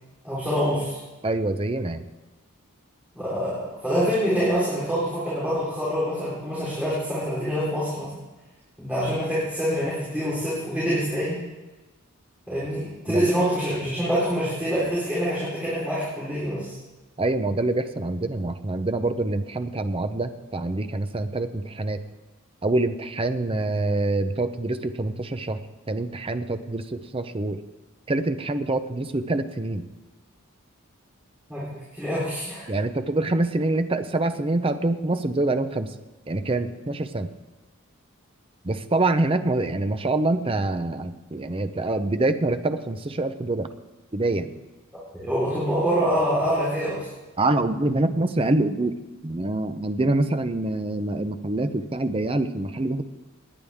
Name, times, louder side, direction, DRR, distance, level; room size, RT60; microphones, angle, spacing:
voice 1, 0.2-1.0 3.1-8.1 8.8-11.4 12.5-16.7 31.5-32.7 45.1-47.1, equal, 5° right, -9 dB, 4.0 m, -25 dB
voice 2, 1.2-2.0 13.1-13.3 17.2-22.0 22.6-25.6 25.9-27.6 28.1-29.9 32.7-35.9 36.3-37.3 38.6-43.7 44.1-44.5 47.4-49.0 49.2-53.0, right 2 dB, 25° right, 9 dB, 0.6 m, -25 dB
18.5 x 10.0 x 3.6 m, 1.2 s
head